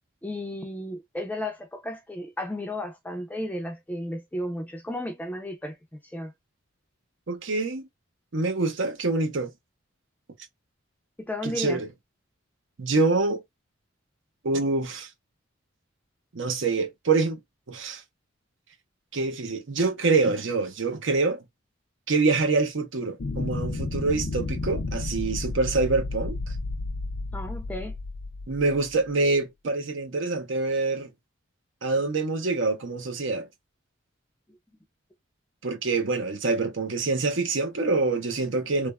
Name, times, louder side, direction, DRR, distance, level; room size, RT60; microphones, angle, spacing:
voice 1, 0.2-5.8 6.1-6.3 11.2-11.8 27.3-27.9, left 1 dB, 10° left, 0.5 m, -33 dB
voice 2, 7.3-7.9 8.3-9.5 11.4-11.9 12.8-13.4 14.4-15.1 16.3-17.4 17.7-18.0 19.1-21.4 22.1-26.4 28.5-31.1 31.8-33.5 35.6-38.9, right 3 dB, 65° right, 0.7 m, -25 dB
sound 1, 23.2-28.9, left 3 dB, 60° left, 0.5 m, -32 dB
3.3 x 2.1 x 2.2 m
head